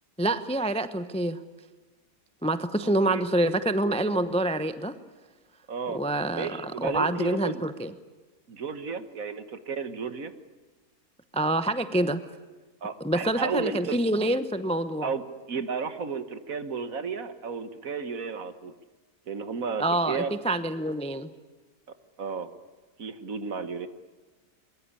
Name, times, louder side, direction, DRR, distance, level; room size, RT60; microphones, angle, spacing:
voice 1, 0.2-1.4 2.4-5.0 5.9-7.9 11.3-12.2 13.0-15.1 19.8-21.3, right 1 dB, 5° left, 11 dB, 0.6 m, -26 dB
voice 2, 2.8-3.2 5.7-6.0 6.3-7.7 8.5-10.3 12.8-14.0 15.0-15.2 15.5-18.7 19.3-20.3 22.2-22.5 23.0-23.9, right 5 dB, 60° right, 11 dB, 1.8 m, -33 dB
22.5 x 22.0 x 9.8 m, 1.3 s
omnidirectional pair, 1.7 m